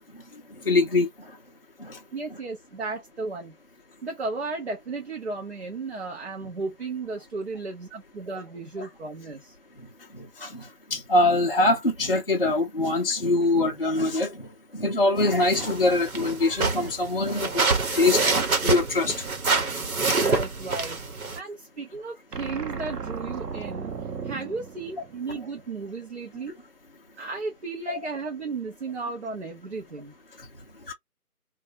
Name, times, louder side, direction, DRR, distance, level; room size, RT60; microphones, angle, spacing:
voice 1, 0.7-1.1 1.8-2.0 10.1-14.4 14.7-18.3 18.6-19.2 27.9-28.0 30.9-31.0, left 2 dB, 40° left, 0.5 m, -23 dB
voice 2, 2.1-3.6 4.0-9.6 20.1-23.9 24.2-26.6 27.2-30.1, right 3 dB, 45° right, 0.6 m, -34 dB
sound 1, 15.2-21.4, right 3 dB, 65° right, 1.0 m, -26 dB
sound 2, 22.3-25.6, right 6 dB, 85° right, 0.8 m, -36 dB
2.8 x 2.3 x 2.7 m
figure-of-eight pair, 160°, 46 cm